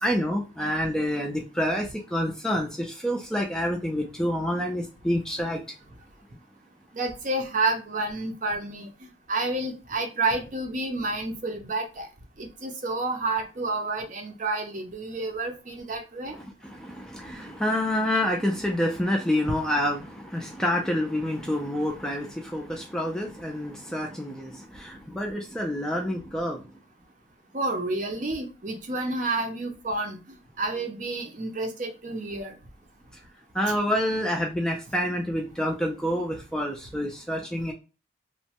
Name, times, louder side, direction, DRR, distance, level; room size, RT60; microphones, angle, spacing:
voice 1, 0.0-5.6 16.3-26.6 33.5-37.7, equal, 5° left, 0 dB, 0.4 m, -28 dB
voice 2, 6.9-8.9 9.3-12.1 12.4-16.4 27.5-32.5, right 2 dB, 40° right, 4 dB, 0.6 m, -30 dB
3.0 x 2.2 x 2.8 m, 0.32 s
head